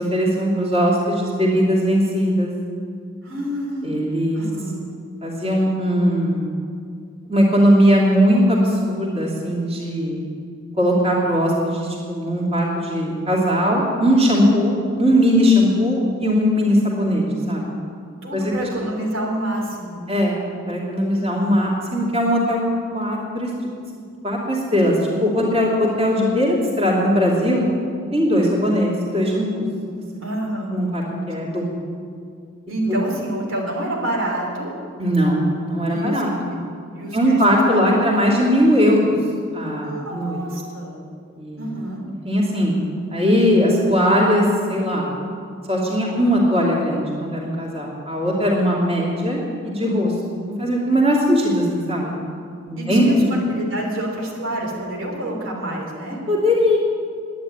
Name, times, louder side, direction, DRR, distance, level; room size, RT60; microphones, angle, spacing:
voice 1, 0.0-2.5 3.8-4.5 5.2-6.5 7.3-10.2 10.8-17.7 18.3-18.5 20.1-22.6 22.9-23.5 24.2-27.7 28.1-30.0 30.7-31.9 32.9-33.0 35.0-36.3 37.1-39.2 39.5-40.4 41.4-41.6 42.2-42.7 43.1-45.1 45.7-52.1 52.7-53.4 56.3-56.8, equal, 30° right, -3 dB, 2.6 m, -19 dB
voice 2, 3.2-3.9 4.3-4.8 18.2-20.0 21.1-21.5 30.2-30.7 32.7-34.7 35.9-36.5 36.9-38.1 39.8-41.0 41.6-42.0 52.8-56.2, right 1 dB, 90° right, -1 dB, 3.3 m, -28 dB
10.5 x 10.0 x 9.7 m, 2.2 s
head